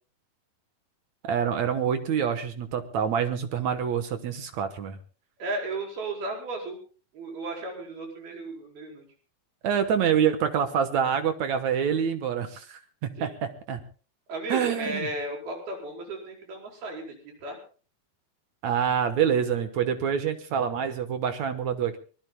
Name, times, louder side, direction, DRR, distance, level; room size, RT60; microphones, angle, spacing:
voice 1, 1.2-5.0 9.6-13.8 14.5-15.1 18.6-22.0, right 8 dB, 60° right, 9 dB, 2.1 m, -26 dB
voice 2, 5.4-6.8 7.1-9.0 13.2-13.3 14.3-17.1 17.4-17.6, right 2 dB, 85° right, 1 dB, 6.7 m, -34 dB
24.5 x 19.5 x 2.2 m, 0.38 s
omnidirectional pair, 4.3 m